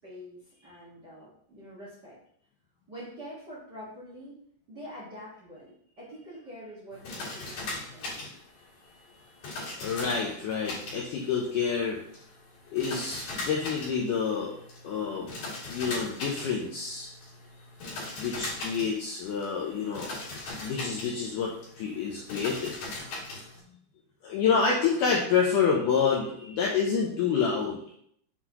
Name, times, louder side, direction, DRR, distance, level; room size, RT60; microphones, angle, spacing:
voice 1, 0.0-2.2 2.9-4.4 4.7-8.3, equal, 45° right, -8 dB, 1.4 m, -45 dB
sound 1, 6.9-23.6, left 2 dB, 65° left, 4.0 m, -40 dB
voice 2, 9.8-12.0 12.7-14.5 14.8-15.3 15.7-17.1 18.2-20.1 20.6-22.8 24.2-27.8, left 6 dB, 80° left, -1 dB, 1.9 m, -28 dB
7.7 x 4.1 x 2.9 m, 0.66 s
omnidirectional pair, 4.5 m